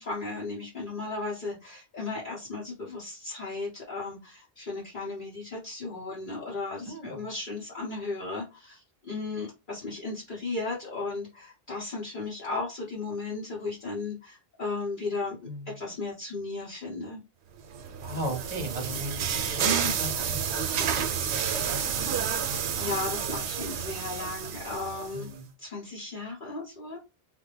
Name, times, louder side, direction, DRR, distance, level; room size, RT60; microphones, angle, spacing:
voice 1, 0.0-15.4 15.7-17.2 22.4-25.3 25.6-27.0, left 3 dB, 50° left, -5 dB, 1.1 m, -35 dB
voice 2, 6.9-7.3 15.4-15.8 18.0-19.2 19.5-22.1 25.1-25.5, right 1 dB, 40° right, 3 dB, 0.9 m, -36 dB
sound 1, 17.7-25.3, right 7 dB, 85° right, 0.9 m, -30 dB
3.3 x 2.1 x 3.2 m, 0.26 s
omnidirectional pair, 1.1 m